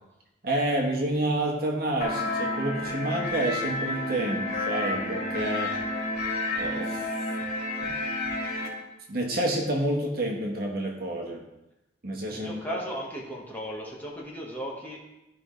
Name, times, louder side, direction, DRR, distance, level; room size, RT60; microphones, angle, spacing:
voice 1, 0.4-5.8 6.5-7.1 7.8-7.9 9.1-11.4 12.0-12.7, right 1 dB, 55° right, -1 dB, 1.4 m, -29 dB
sound 1, 2.0-8.7, left 2 dB, 40° left, 2.4 m, -30 dB
voice 2, 12.3-15.0, equal, 10° left, -3 dB, 1.5 m, -36 dB
14.0 x 5.2 x 3.2 m, 0.96 s
head